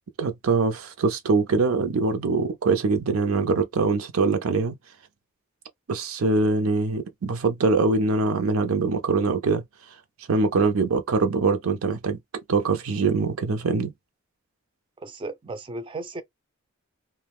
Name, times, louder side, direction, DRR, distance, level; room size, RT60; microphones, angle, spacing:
voice 1, 0.2-4.8 5.9-9.6 10.3-12.2 12.5-13.9, right 4 dB, 80° right, 0.5 m, -23 dB
voice 2, 15.0-16.2, right 2 dB, 25° right, 0.4 m, -35 dB
2.4 x 2.1 x 3.4 m
head